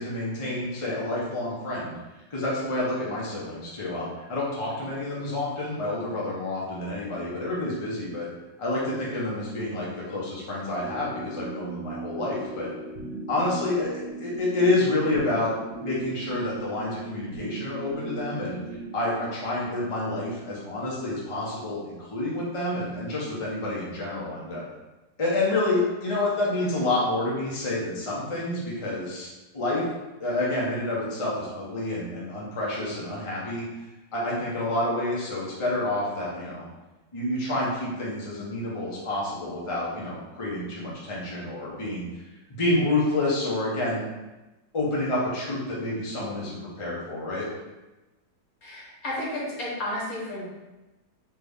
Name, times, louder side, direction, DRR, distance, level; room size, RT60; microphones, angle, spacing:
voice 1, 0.0-2.0 2.3-8.3 8.6-12.7 13.3-15.5 15.8-18.6 18.9-24.6 25.2-29.3 29.5-29.8 30.2-33.6 34.1-36.6 37.1-42.1 42.6-44.0 44.7-47.4, left 2 dB, 25° left, -6 dB, 0.8 m, -28 dB
sound 1, 10.8-19.5, right 3 dB, 85° right, 1.4 m, -38 dB
voice 2, 48.6-50.5, left 1 dB, 55° left, -5 dB, 1.4 m, -32 dB
3.9 x 3.4 x 3.5 m, 1.1 s
omnidirectional pair, 1.9 m